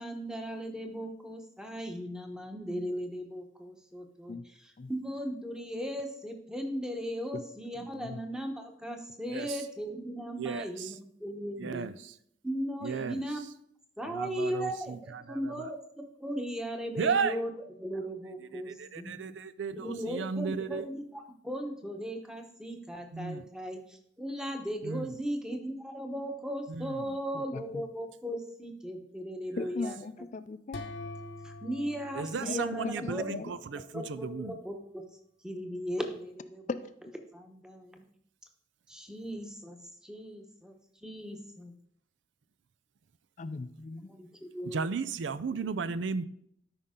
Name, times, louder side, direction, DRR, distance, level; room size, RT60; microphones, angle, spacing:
voice 1, 0.0-11.9 12.4-13.4 14.0-15.8 16.2-17.5 17.8-19.2 19.7-29.9 31.4-33.3 33.7-35.0 35.4-36.7 37.3-38.0 38.9-39.8 40.0-41.7 44.1-44.9, equal, 5° right, 3 dB, 1.0 m, -37 dB
voice 2, 7.8-8.2 27.3-27.8 29.6-30.8 32.4-33.5 36.7-36.9 43.4-44.1, left 3 dB, 40° left, 12 dB, 0.4 m, -38 dB
voice 3, 9.2-9.7 10.4-11.0 11.6-12.2 12.8-13.4 14.0-15.7 17.0-17.4 18.4-20.9 23.1-23.5 24.8-25.1 26.7-27.2 32.1-34.6 44.6-46.2, right 5 dB, 85° right, 14 dB, 0.4 m, -35 dB
sound 1, 30.7-33.5, left 2 dB, 80° left, 1.0 m, -45 dB
13.0 x 5.4 x 3.7 m, 0.70 s
head